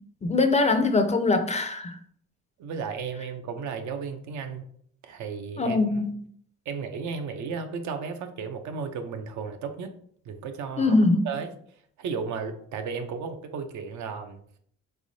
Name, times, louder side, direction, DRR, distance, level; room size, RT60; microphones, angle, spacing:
voice 1, 0.2-2.0 5.6-6.1 10.8-11.3, left 3 dB, 25° left, 0.4 m, -22 dB
voice 2, 2.6-4.7 5.0-6.0 6.7-10.0 10.3-11.0 11.2-11.5 12.0-14.4, right 5 dB, 75° right, 0.6 m, -34 dB
3.6 x 3.3 x 2.6 m
cardioid pair, 90°, 30 cm